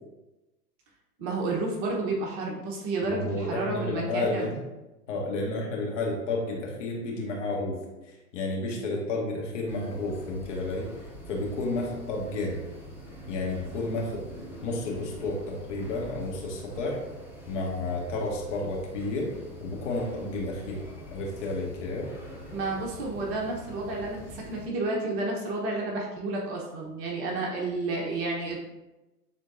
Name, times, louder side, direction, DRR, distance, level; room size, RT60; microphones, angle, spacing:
voice 1, 1.2-4.5 22.5-28.6, right 2 dB, 30° right, -1 dB, 1.0 m, -31 dB
voice 2, 3.0-4.5 5.1-7.8 8.0-12.6 13.3-14.3 14.6-17.0 17.5-19.3 19.6-22.1, left 2 dB, 50° left, -2 dB, 1.7 m, -31 dB
sound 1, 9.7-24.7, equal, 5° right, 0.9 m, -44 dB
9.6 x 3.7 x 2.6 m, 1.0 s
figure-of-eight pair, 110°, 47 cm